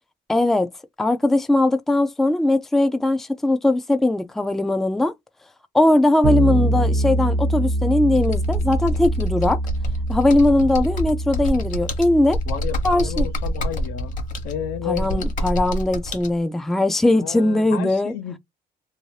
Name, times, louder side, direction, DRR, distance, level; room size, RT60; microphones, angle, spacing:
voice 1, 0.3-0.7 1.0-5.1 5.7-9.6 10.1-12.4 12.8-13.2 14.9-18.1, left 1 dB, ahead, 0.3 m, -20 dB
Bass guitar, 6.2-15.9, right 1 dB, 70° right, 0.9 m, -25 dB
Computer keyboard, 8.1-16.3, equal, 50° left, 1.0 m, -28 dB
voice 2, 12.5-14.2 14.4-15.2 17.1-18.4, left 10 dB, 80° left, 0.6 m, -31 dB
2.7 x 2.1 x 3.1 m
cardioid pair, 110°, 17 cm